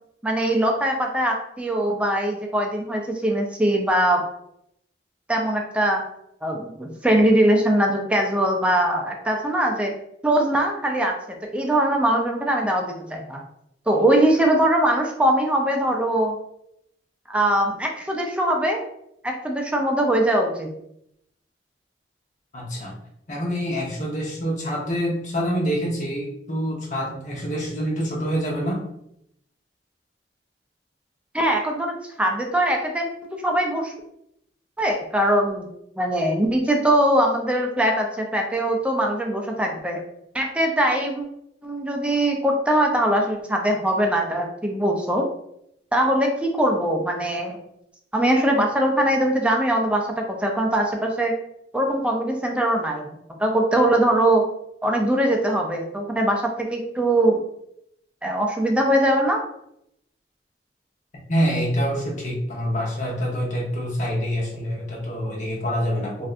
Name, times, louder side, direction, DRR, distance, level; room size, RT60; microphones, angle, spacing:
voice 1, 0.2-4.2 5.3-6.0 6.4-9.9 10.2-13.4 13.9-16.4 17.3-18.8 19.2-20.7 31.3-33.9 34.8-35.7 36.0-40.0 40.3-41.3 41.6-45.2 45.9-47.6 48.1-51.3 51.7-54.4 54.8-57.4 58.2-59.4, right 1 dB, 5° right, 1 dB, 0.4 m, -21 dB
voice 2, 22.5-23.0 23.3-28.8 61.3-66.3, equal, 45° left, -2 dB, 0.9 m, -26 dB
3.2 x 2.6 x 2.4 m, 0.76 s
head